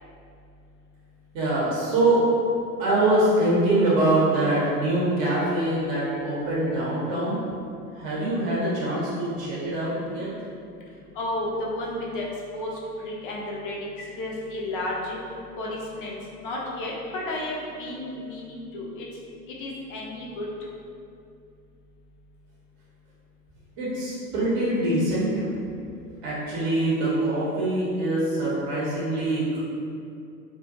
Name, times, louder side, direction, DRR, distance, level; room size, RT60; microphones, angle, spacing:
voice 1, 1.3-2.2 2.8-7.4 7.9-10.3 23.8-25.5 26.2-29.6, right 1 dB, 40° right, -7 dB, 0.8 m, -24 dB
voice 2, 11.1-12.3 12.5-15.2 15.5-19.1 19.5-20.5, left 1 dB, 35° left, -3 dB, 0.4 m, -32 dB
2.4 x 2.2 x 2.7 m, 2.5 s
figure-of-eight pair, 90°, 50 cm